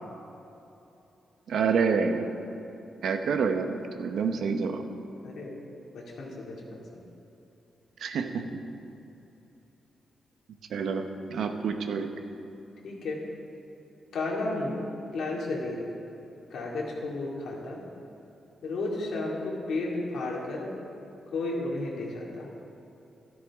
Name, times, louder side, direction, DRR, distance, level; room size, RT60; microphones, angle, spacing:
voice 1, 1.5-2.3 3.0-4.9 8.0-8.5 10.7-12.1, right 5 dB, 70° right, 6 dB, 0.9 m, -28 dB
voice 2, 5.2-5.6 5.9-7.0 12.8-13.2 14.1-15.8 16.5-17.8 18.6-20.7 21.3-22.5, left 2 dB, 75° left, -3 dB, 2.4 m, -33 dB
13.5 x 13.0 x 3.6 m, 2.9 s
wide cardioid pair, 175°, 0 cm